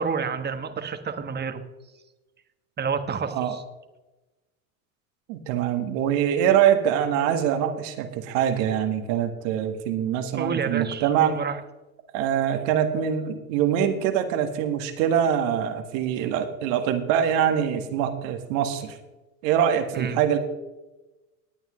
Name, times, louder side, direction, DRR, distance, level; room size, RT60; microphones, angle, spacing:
voice 1, 0.0-1.6 2.8-3.6 10.4-11.6 19.9-20.2, right 6 dB, 25° right, 8 dB, 1.4 m, -29 dB
voice 2, 5.3-11.3 12.1-19.0 19.4-20.4, right 9 dB, 65° right, 7 dB, 1.9 m, -24 dB
19.0 x 9.1 x 3.2 m, 1.1 s
hypercardioid pair, 90°, 41 cm